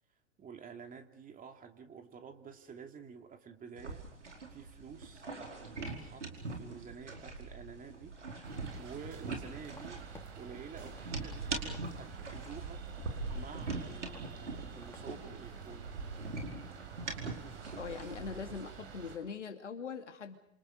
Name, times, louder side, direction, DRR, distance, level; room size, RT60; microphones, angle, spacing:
voice 1, 0.4-4.0 4.5-5.3 5.7-8.2 8.7-10.0 10.4-12.8 13.3-15.9, right 6 dB, 25° right, 4 dB, 2.9 m, -50 dB
sound 1, 3.8-18.7, right 3 dB, 85° right, 4.9 m, -42 dB
sound 2, 8.4-19.2, right 7 dB, 65° right, 6.4 m, -50 dB
sound 3, 9.5-10.2 10.6-11.9 12.2-13.7 14.1-14.3 14.6-15.1 15.3-15.4 15.9-16.5 16.8-17.1 17.5-17.8, left 2 dB, 5° left, 4.0 m, -55 dB
voice 2, 17.7-20.4, left 6 dB, 80° left, 5 dB, 2.7 m, -42 dB
28.0 x 28.0 x 5.3 m, 0.71 s
figure-of-eight pair, 95°, 35 cm